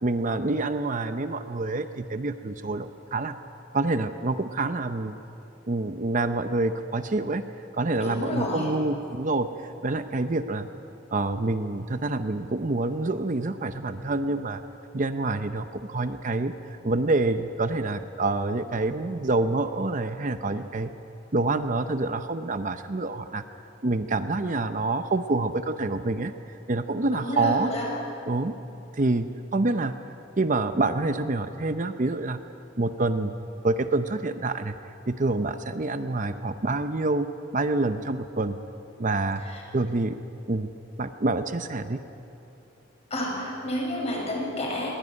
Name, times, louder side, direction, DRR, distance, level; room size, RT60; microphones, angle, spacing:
voice 1, 0.0-3.4 3.7-5.1 5.7-7.4 7.7-9.5 9.8-10.7 11.1-14.6 14.9-16.5 16.8-20.9 21.3-23.4 23.8-26.3 26.7-27.7 28.3-28.5 29.0-29.9 30.4-32.4 32.8-33.3 33.6-34.7 35.1-37.3 37.5-38.6 39.0-39.4 39.7-40.2 40.5-40.7 41.0-42.0, right 2 dB, 40° right, 9 dB, 0.7 m, -27 dB
voice 2, 8.0-8.7 27.1-27.9 39.4-39.6 43.1-44.9, left 1 dB, 35° left, -2 dB, 6.7 m, -30 dB
20.5 x 18.5 x 9.9 m, 2.8 s
head